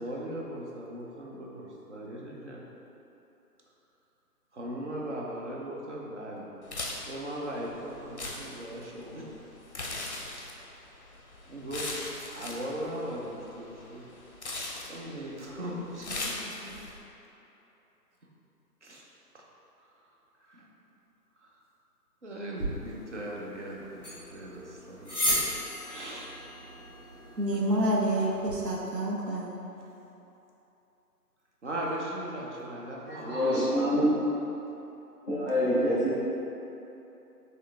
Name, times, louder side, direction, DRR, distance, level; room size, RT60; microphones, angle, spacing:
voice 1, 0.0-2.6 4.5-6.5 7.1-9.3 11.5-11.9 12.3-14.1 14.8-16.7 18.8-19.0 19.3-19.4 20.4-20.6 21.4-21.5 22.2-25.5 25.8-26.3 27.5-27.6 28.0-28.6 29.0-29.1 31.6-33.6, right 1 dB, 45° right, -3 dB, 0.7 m, -39 dB
sound 1, 6.6-17.0, left 2 dB, 45° left, 0.5 m, -40 dB
sound 2, 22.6-28.6, equal, 5° left, 1.3 m, -35 dB
voice 2, 27.4-29.5, right 1 dB, 80° right, -3 dB, 1.0 m, -28 dB
voice 3, 33.0-34.1 35.2-36.3, equal, 10° right, -18 dB, 0.9 m, -26 dB
4.6 x 3.2 x 3.3 m, 3.0 s
figure-of-eight pair, 155°, 49 cm